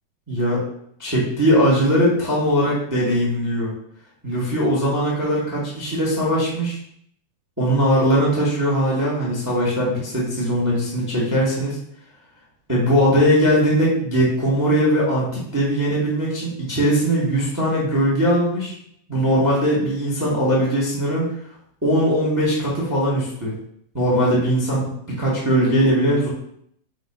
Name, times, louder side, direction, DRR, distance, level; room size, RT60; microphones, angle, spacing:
voice 1, 0.3-0.6 1.0-3.7 4.2-6.8 7.6-11.8 12.7-18.7 19.1-21.3 21.8-23.5 23.9-26.3, equal, 15° right, -5 dB, 0.7 m, -20 dB
5.7 x 3.1 x 5.4 m, 0.69 s
omnidirectional pair, 3.8 m